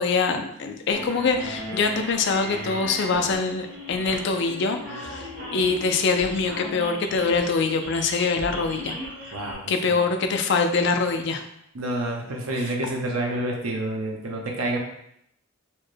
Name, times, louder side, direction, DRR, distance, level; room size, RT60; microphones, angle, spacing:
voice 1, 0.0-9.0 9.3-9.4 9.7-11.4, left 4 dB, 55° left, 6 dB, 0.3 m, -24 dB
sound 1, 0.9-9.5, equal, 55° right, 1.1 m, -37 dB
voice 2, 11.7-14.8, right 1 dB, 85° right, 0 dB, 0.7 m, -28 dB
4.2 x 2.2 x 3.2 m, 0.74 s
head